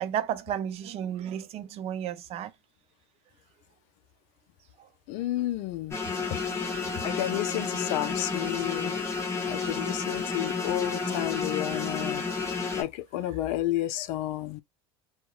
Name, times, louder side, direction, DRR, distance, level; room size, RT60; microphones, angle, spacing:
voice 1, 0.0-2.5 4.8-4.9 6.3-6.4 11.0-11.2, right 10 dB, 50° right, 0.5 m, -33 dB
voice 2, 5.1-6.0 7.0-9.0 9.5-12.3 12.8-14.6, left 14 dB, 65° left, 0.4 m, -31 dB
sound 1, 5.9-12.8, left 4 dB, 20° left, 1.0 m, -31 dB
2.6 x 2.1 x 2.3 m
hypercardioid pair, 75°, 13 cm